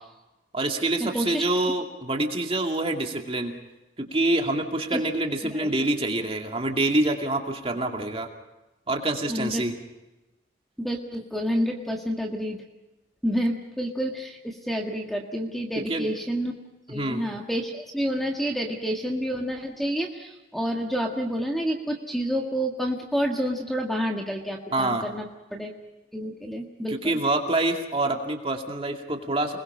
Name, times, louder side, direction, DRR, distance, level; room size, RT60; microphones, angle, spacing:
voice 1, 0.5-3.5 4.0-8.3 8.9-9.8 15.9-16.1 16.9-17.2 24.7-25.1 26.9-29.6, right 2 dB, 30° right, 3 dB, 2.4 m, -26 dB
voice 2, 1.1-1.4 4.9-5.0 5.4-5.7 9.3-9.6 10.8-12.6 13.2-16.5 16.9-25.3 25.5-25.7 26.1-27.2, equal, ahead, 1 dB, 1.7 m, -29 dB
29.5 x 21.0 x 5.6 m, 1.0 s
head